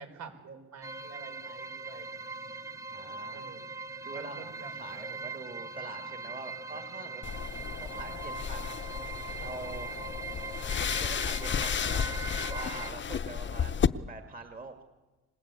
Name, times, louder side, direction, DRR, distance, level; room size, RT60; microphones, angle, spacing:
voice 1, 0.0-2.3 3.3-3.6 4.1-4.7, right 5 dB, 65° right, 5 dB, 5.2 m, -48 dB
sound 1, 0.8-12.9, right 4 dB, 10° right, 0.7 m, -41 dB
voice 2, 2.9-3.5 4.0-7.2 7.8-8.7 9.3-9.9 11.0-14.8, right 3 dB, 30° right, 4 dB, 2.2 m, -44 dB
sound 2, 7.2-13.9, left 7 dB, 40° left, 0.8 m, -33 dB
26.5 x 20.5 x 8.4 m, 1.2 s
cardioid pair, 90°, 30 cm